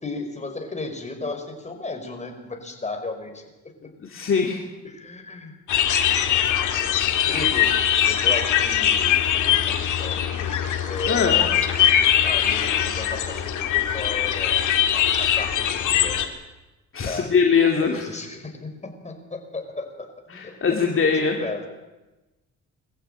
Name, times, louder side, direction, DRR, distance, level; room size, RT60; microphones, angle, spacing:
voice 1, 0.0-3.4 4.8-5.5 7.3-11.6 11.9-14.6 14.9-16.2 17.0-17.3 17.8-21.7, left 3 dB, 25° left, 4 dB, 5.0 m, -35 dB
voice 2, 4.0-4.6 11.0-11.4 16.9-18.0 20.3-21.4, left 5 dB, 45° left, 1 dB, 2.6 m, -21 dB
sound 1, 5.7-16.3, left 10 dB, 75° left, 2.3 m, -21 dB
22.0 x 14.5 x 9.0 m, 1.1 s
cardioid pair, 90°, 30 cm